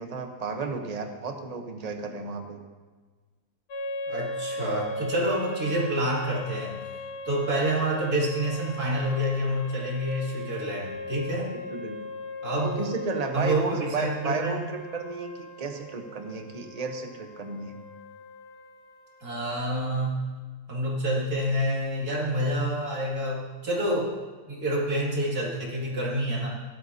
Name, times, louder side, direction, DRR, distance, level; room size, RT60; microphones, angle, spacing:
voice 1, 0.0-2.6 11.5-12.1 12.6-17.8, right 4 dB, 30° right, 5 dB, 0.9 m, -33 dB
sound 1, 3.7-20.0, left 1 dB, 75° left, 1.7 m, -38 dB
voice 2, 4.1-6.8 7.2-11.6 12.4-12.9 13.3-14.6 19.2-20.2 20.7-24.1 24.5-26.5, right 1 dB, 65° right, -4 dB, 3.1 m, -28 dB
17.0 x 12.0 x 2.8 m, 1.4 s
omnidirectional pair, 1.7 m